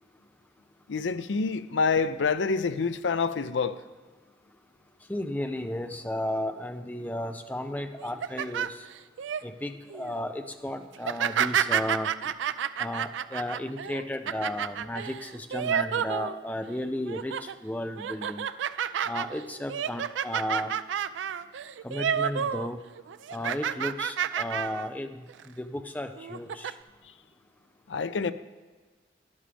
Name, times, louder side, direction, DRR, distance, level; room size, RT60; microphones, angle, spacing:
voice 1, 0.9-3.8 27.9-28.3, left 4 dB, 85° left, 0.5 m, -27 dB
voice 2, 5.1-8.8 9.4-12.3 12.8-18.5 19.1-20.7 21.8-22.8 23.3-25.2 25.6-26.7, left 1 dB, 10° left, 0.5 m, -34 dB
sound 1, 8.0-9.4 9.9-10.2 11.0-16.7 17.1-17.5 18.0-22.7 23.0-24.9 25.3-25.5 26.2-26.7, right 8 dB, 85° right, 0.4 m, -30 dB
12.5 x 11.5 x 3.4 m
head